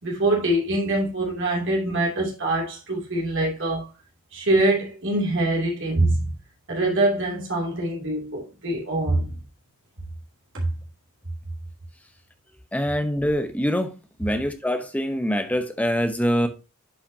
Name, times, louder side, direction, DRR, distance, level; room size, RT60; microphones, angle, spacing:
voice 1, 0.0-3.9 4.3-6.3 6.7-9.4 10.5-10.7, right 1 dB, 60° right, 2.7 m, -24 dB
voice 2, 12.7-16.5, equal, 5° left, 0.8 m, -24 dB
10.0 x 5.7 x 2.8 m
head